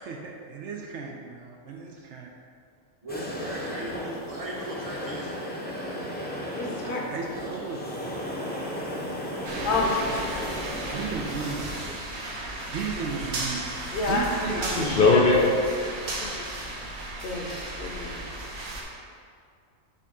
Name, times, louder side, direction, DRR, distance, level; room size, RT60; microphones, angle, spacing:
voice 1, 0.1-2.3 6.8-7.9 10.9-11.8 12.7-15.3, right 5 dB, 65° right, 1 dB, 0.8 m, -35 dB
voice 2, 3.0-5.3 9.6-9.8 11.9-12.2, equal, 30° right, -4 dB, 0.8 m, -38 dB
sound 1, 3.1-11.8, equal, 10° left, 0.7 m, -35 dB
voice 3, 6.6-7.1 9.6-10.1 13.9-14.3 15.0-15.5 17.2-18.2, left 3 dB, 55° left, -1 dB, 1.1 m, -28 dB
sound 2, 9.4-18.8, right 2 dB, 90° right, 1.4 m, -35 dB
voice 4, 14.5-16.8, left 3 dB, 80° left, -2 dB, 0.4 m, -24 dB
6.4 x 3.3 x 5.3 m, 2.2 s
omnidirectional pair, 1.5 m